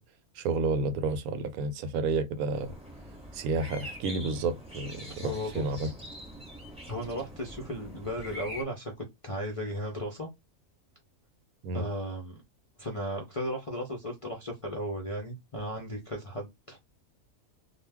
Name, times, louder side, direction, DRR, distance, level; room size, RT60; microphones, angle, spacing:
voice 1, 0.4-2.7 3.3-5.9 11.6-11.9, right 3 dB, 80° right, 1.0 m, -30 dB
sound 1, 2.5-8.6, equal, 5° right, 0.8 m, -44 dB
voice 2, 5.2-5.9 6.9-8.9 9.2-10.3 11.7-12.4 12.8-16.8, equal, 40° left, 0.4 m, -35 dB
2.4 x 2.3 x 3.4 m
omnidirectional pair, 1.5 m